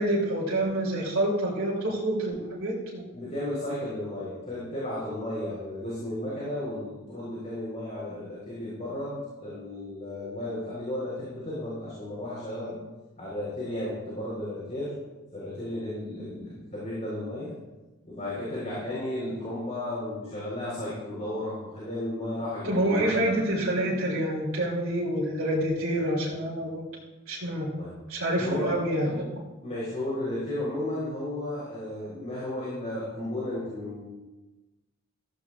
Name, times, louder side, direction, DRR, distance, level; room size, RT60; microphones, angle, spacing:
voice 1, 0.0-3.0 22.6-26.8 27.3-27.7 28.1-29.2, right 1 dB, 70° right, -5 dB, 3.1 m, -27 dB
voice 2, 3.1-12.8 13.2-14.9 15.3-17.5 18.0-23.3 27.8-27.9 28.4-28.7 29.6-34.0, left 1 dB, 35° left, -8 dB, 4.3 m, -34 dB
15.0 x 14.5 x 2.5 m, 1.1 s
head